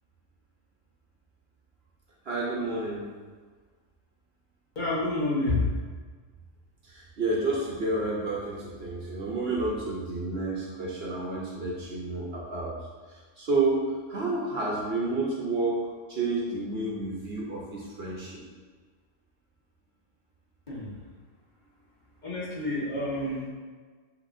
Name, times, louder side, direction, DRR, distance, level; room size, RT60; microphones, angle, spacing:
voice 1, 2.3-3.1 6.9-12.7 13.4-15.8 16.1-18.3, right 2 dB, 55° right, -3 dB, 0.9 m, -30 dB
voice 2, 4.7-5.7 20.7-20.9 22.2-23.5, left 2 dB, 40° left, -7 dB, 1.0 m, -28 dB
5.7 x 2.9 x 2.6 m, 1.5 s
omnidirectional pair, 1.4 m